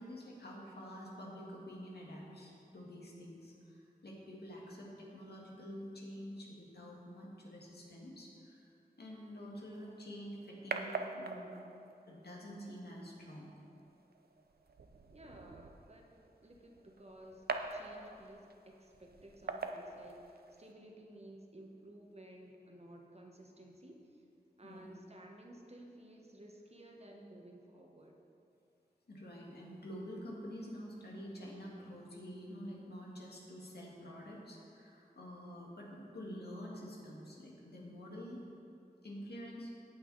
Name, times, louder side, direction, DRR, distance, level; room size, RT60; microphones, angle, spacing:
voice 1, 0.0-8.7 9.0-11.5 12.1-13.5 24.6-24.9 29.1-38.4 39.0-39.7, equal, 85° left, -3 dB, 2.0 m, -48 dB
sound 1, 9.7-20.7, right 4 dB, 70° right, 0.6 m, -45 dB
voice 2, 15.1-24.2 24.6-28.2, right 1 dB, 40° right, 0 dB, 1.4 m, -55 dB
17.0 x 5.9 x 4.1 m, 2.6 s
wide cardioid pair, 70°, 16 cm